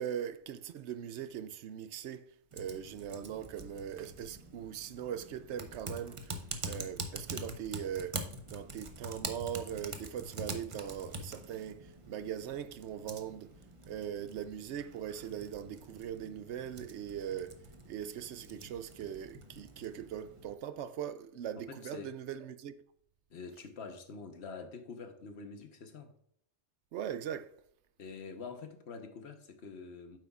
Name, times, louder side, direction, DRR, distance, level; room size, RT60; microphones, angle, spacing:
voice 1, 0.0-2.2 2.5-6.3 6.6-8.2 8.5-13.5 13.9-17.5 17.9-22.7 26.9-27.5, right 9 dB, 75° right, 0.8 m, -40 dB
Typing, 2.5-20.5, right 2 dB, 35° right, 0.7 m, -45 dB
voice 2, 21.7-22.1 23.3-26.1 28.0-30.2, left 4 dB, 70° left, 1.3 m, -46 dB
9.3 x 7.7 x 2.4 m
omnidirectional pair, 1.2 m